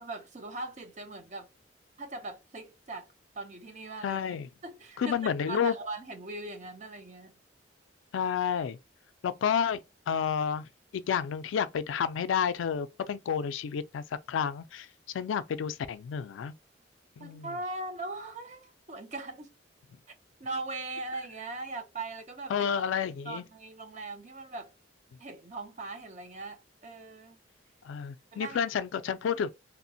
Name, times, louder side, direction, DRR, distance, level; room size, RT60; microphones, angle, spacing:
voice 1, 0.0-1.5 2.0-3.1 3.3-4.2 4.6-5.2 5.5-7.4 17.2-19.5 20.4-22.5 22.8-22.9 23.2-24.7 25.2-27.4 28.3-28.6, right 2 dB, 40° right, 0.6 m, -40 dB
voice 2, 4.0-4.5 5.0-5.7 8.1-8.8 9.2-9.8 10.1-14.9 15.1-16.5 17.2-17.5 22.5-23.4 27.8-29.5, left 7 dB, 85° left, 0.3 m, -30 dB
2.8 x 2.0 x 2.7 m
head